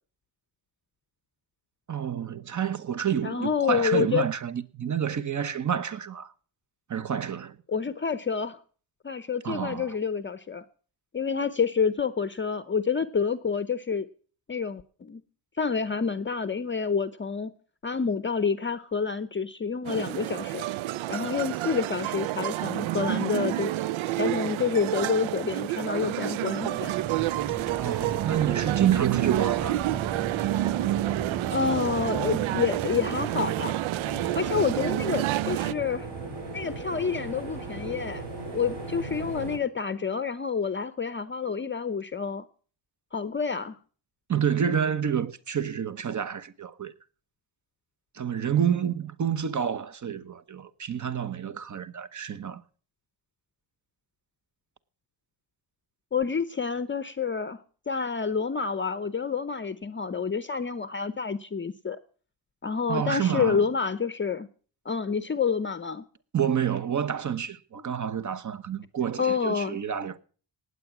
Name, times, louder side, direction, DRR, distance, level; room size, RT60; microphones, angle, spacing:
voice 1, 1.9-6.3 6.9-7.6 9.4-9.9 27.8-29.8 44.3-46.9 48.1-52.6 62.9-63.6 66.3-70.2, right 8 dB, 40° right, 1.0 m, -28 dB
voice 2, 3.2-4.3 7.7-8.6 9.0-10.6 11.1-14.1 14.5-15.2 15.6-17.5 17.8-20.7 21.1-23.7 24.2-27.0 31.5-33.8 34.4-36.1 36.5-38.3 38.5-42.5 43.1-43.8 56.1-62.0 62.6-64.5 64.8-66.0 69.2-69.8, left 6 dB, 25° left, 0.7 m, -28 dB
sound 1, 19.9-35.7, right 15 dB, 85° right, 0.6 m, -29 dB
sound 2, 26.5-38.8, right 6 dB, 20° right, 0.7 m, -38 dB
sound 3, 34.0-39.6, right 3 dB, 60° right, 7.0 m, -38 dB
18.5 x 8.2 x 6.0 m
wide cardioid pair, 130°, 46 cm